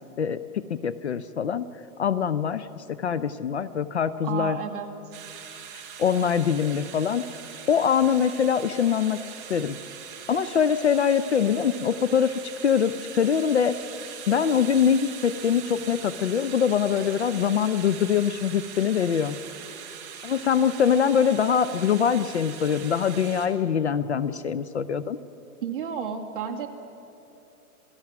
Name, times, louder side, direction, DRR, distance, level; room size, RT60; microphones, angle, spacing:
voice 1, 0.2-1.6 2.0-4.6 6.0-7.2 7.7-9.2 9.5-9.8 10.3-13.8 14.3-19.4 20.2-25.2, left 7 dB, 50° left, 15 dB, 0.5 m, -23 dB
voice 2, 4.2-4.9 25.6-26.7, right 8 dB, 35° right, 1 dB, 1.7 m, -31 dB
sound 1, 5.1-23.5, right 8 dB, 15° right, 1.1 m, -41 dB
27.0 x 17.0 x 5.9 m, 3.0 s
hypercardioid pair, 175°, 45 cm